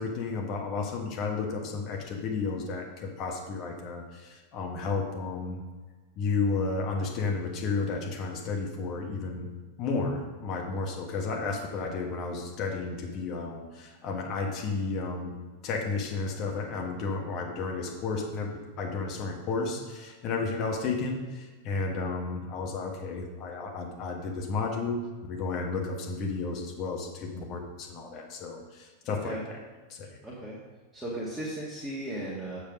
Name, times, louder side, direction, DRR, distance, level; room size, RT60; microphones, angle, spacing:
voice 1, 0.0-5.6 6.2-9.5 9.8-15.3 15.6-25.0 25.3-29.6 29.9-30.2, left 4 dB, 35° left, 1 dB, 1.3 m, -32 dB
voice 2, 29.1-29.5 30.2-30.6 30.9-32.6, right 1 dB, 10° right, -6 dB, 1.8 m, -36 dB
7.4 x 7.2 x 5.2 m, 1.3 s
figure-of-eight pair, 90°, 0 cm